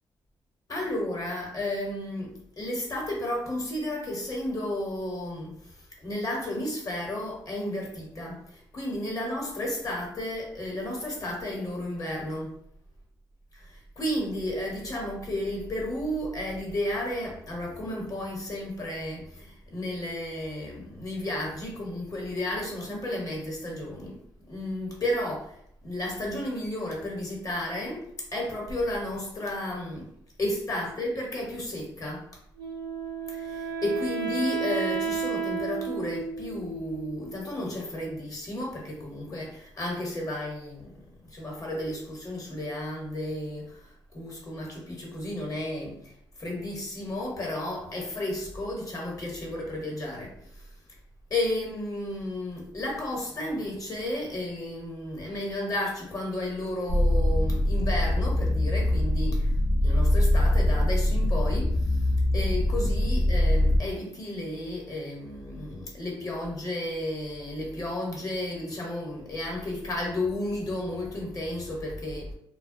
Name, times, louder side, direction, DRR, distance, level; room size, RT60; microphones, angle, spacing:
voice 1, 0.7-12.5 13.6-25.6 25.8-30.1 30.4-32.2 33.3-50.7 51.3-59.5 59.8-72.3, left 1 dB, 40° left, 1.0 m, -33 dB
Wind instrument woodwind instrument, 32.6-37.6, right 6 dB, 55° right, 0.6 m, -32 dB
sound 1, 56.9-63.8, left 1 dB, 55° left, 0.5 m, -23 dB
2.2 x 2.1 x 2.6 m
supercardioid pair, 60°, 9 cm